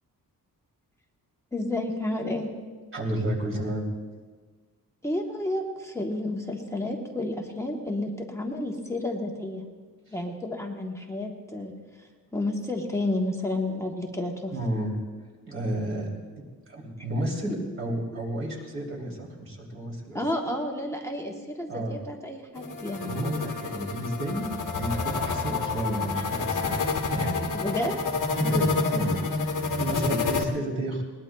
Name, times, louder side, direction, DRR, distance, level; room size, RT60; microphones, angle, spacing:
voice 1, 1.5-2.5 5.0-9.6 10.1-11.7 12.0-14.5 20.1-23.2 27.6-27.9, left 1 dB, 10° left, 0 dB, 1.0 m, -31 dB
voice 2, 2.9-3.9 10.1-10.2 14.5-15.0 15.5-16.1 16.7-20.2 21.7-22.0 23.0-27.5 28.3-29.2 29.7-31.0, right 1 dB, 35° right, -1 dB, 3.1 m, -31 dB
sound 1, 22.5-30.4, left 4 dB, 60° left, 1.3 m, -28 dB
21.0 x 19.5 x 2.3 m, 1.4 s
wide cardioid pair, 175°, 35 cm